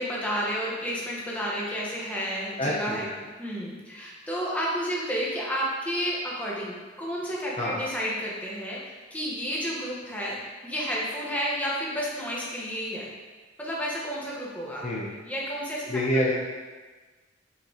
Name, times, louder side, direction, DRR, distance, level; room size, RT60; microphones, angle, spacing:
voice 1, 0.0-3.1 3.4-10.4 10.6-13.1 13.6-14.8 15.2-15.9 16.1-16.2, equal, 10° left, -6 dB, 1.3 m, -31 dB
voice 2, 2.6-3.0 7.6-7.8 14.8-15.1 15.9-16.3, left 1 dB, 35° left, -4 dB, 0.8 m, -27 dB
8.1 x 5.1 x 3.0 m, 1.3 s
head